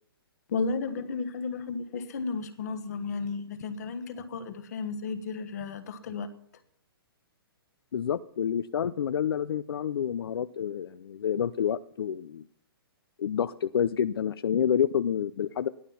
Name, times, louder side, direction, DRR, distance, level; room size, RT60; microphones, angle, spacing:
voice 1, 0.5-6.3, left 4 dB, 40° left, 10 dB, 1.3 m, -33 dB
voice 2, 7.9-12.4 13.2-15.7, left 8 dB, 70° left, 12 dB, 0.6 m, -28 dB
14.5 x 11.5 x 5.7 m, 0.68 s
hypercardioid pair, 170°, 13 cm